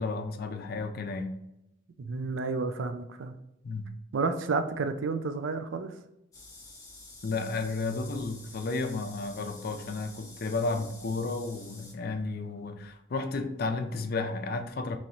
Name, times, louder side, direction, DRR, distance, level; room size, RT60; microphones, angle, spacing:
voice 1, 0.0-1.4 3.6-3.9 7.2-15.0, left 3 dB, 50° left, 7 dB, 0.4 m, -32 dB
voice 2, 2.0-3.3 4.1-5.9, right 4 dB, 80° right, 9 dB, 0.4 m, -31 dB
sound 1, 6.3-11.9, left 2 dB, 20° left, 0.9 m, -49 dB
3.1 x 2.9 x 3.9 m, 0.84 s
head